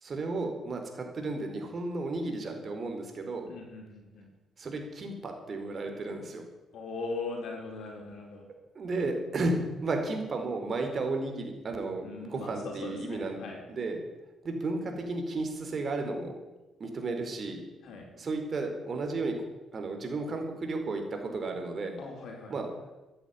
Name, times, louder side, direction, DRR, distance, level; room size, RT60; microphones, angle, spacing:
voice 1, 0.0-3.5 4.6-6.4 8.7-13.4 13.7-14.0 14.4-16.3 16.8-17.6 18.1-19.4 19.7-22.0 22.5-22.7, right 3 dB, 45° right, 4 dB, 4.4 m, -33 dB
voice 2, 3.5-4.3 6.7-8.4 12.0-13.6 17.8-18.1 22.0-22.5, left 3 dB, 70° left, 1 dB, 4.6 m, -40 dB
14.5 x 10.5 x 9.7 m, 1.1 s
cardioid pair, 90°, 0 cm